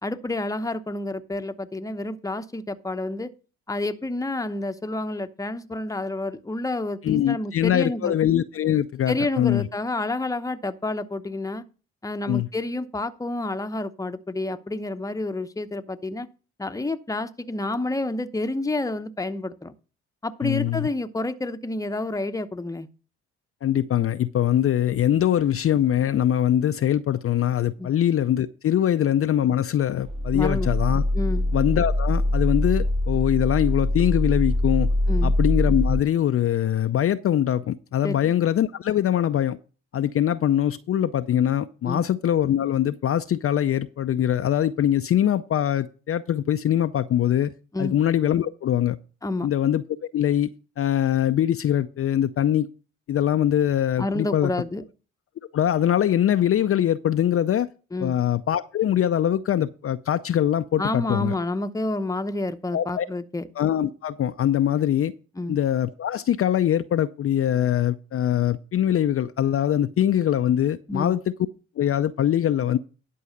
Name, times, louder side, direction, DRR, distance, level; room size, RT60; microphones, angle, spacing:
voice 1, 0.0-3.3 3.7-8.2 9.1-11.6 12.0-16.3 16.6-19.7 20.2-22.9 27.8-27.9 30.3-30.7 31.1-31.5 35.1-35.3 38.0-38.3 41.8-42.0 47.7-47.9 49.2-49.5 54.0-54.8 57.9-58.2 60.8-63.5 65.4-65.6 70.9-71.2, left 2 dB, 10° left, 0.8 m, -29 dB
voice 2, 7.0-9.7 12.3-12.5 20.4-20.9 23.6-31.0 31.5-34.9 35.2-39.6 39.9-47.5 47.8-49.0 49.4-49.8 50.1-50.5 50.8-52.7 53.1-54.5 55.5-57.7 58.0-61.3 62.7-63.1 63.6-65.1 65.5-71.2 71.8-72.8, left 11 dB, 45° left, 0.5 m, -22 dB
sound 1, 30.1-36.0, left 1 dB, 15° right, 1.4 m, -23 dB
11.0 x 4.7 x 6.6 m
supercardioid pair, 60°, 31 cm